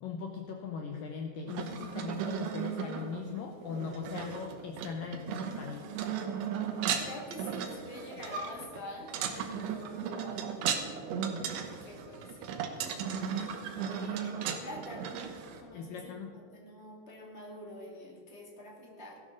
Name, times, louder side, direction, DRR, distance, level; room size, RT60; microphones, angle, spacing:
voice 1, 0.0-5.9 15.7-16.3, left 5 dB, 80° left, 3 dB, 2.0 m, -39 dB
sound 1, 1.5-15.6, right 7 dB, 85° right, 3.3 m, -36 dB
voice 2, 5.1-6.0 7.0-11.3 11.5-12.6 13.8-15.2 15.6-19.2, left 1 dB, 25° left, -2 dB, 1.4 m, -47 dB
18.5 x 13.0 x 3.9 m, 2.1 s
omnidirectional pair, 5.1 m